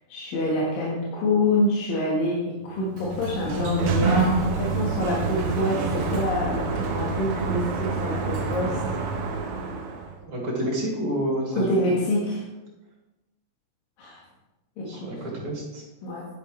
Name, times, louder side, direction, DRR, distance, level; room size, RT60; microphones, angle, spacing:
voice 1, 0.1-8.8 11.5-12.4 14.0-14.2 14.8-15.2 16.0-16.3, left 2 dB, 75° left, -4 dB, 3.2 m, -26 dB
Sliding door, 2.8-10.2, right 5 dB, 80° right, 1.2 m, -27 dB
voice 2, 10.2-11.8 14.9-15.8, equal, 40° right, -4 dB, 3.6 m, -29 dB
10.5 x 10.0 x 3.2 m, 1.0 s
omnidirectional pair, 4.1 m